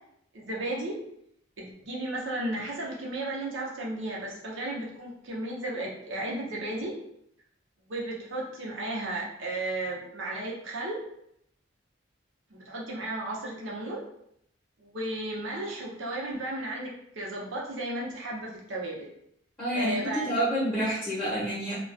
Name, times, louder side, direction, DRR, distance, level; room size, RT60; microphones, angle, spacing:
voice 1, 0.3-1.0 1.6-7.0 7.9-11.0 12.6-14.0 14.8-19.1 19.7-20.5, right 1 dB, 80° right, -3 dB, 0.7 m, -34 dB
voice 2, 19.6-21.8, right 1 dB, 15° left, -9 dB, 0.7 m, -28 dB
2.3 x 2.2 x 2.5 m, 0.74 s
head